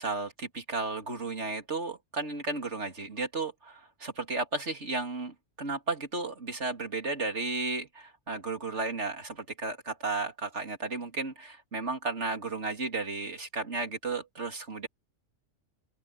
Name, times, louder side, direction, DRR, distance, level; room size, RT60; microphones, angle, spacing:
voice 1, 0.0-14.9, right 3 dB, 60° right, 3.0 m, -34 dB
omnidirectional pair, 1.3 m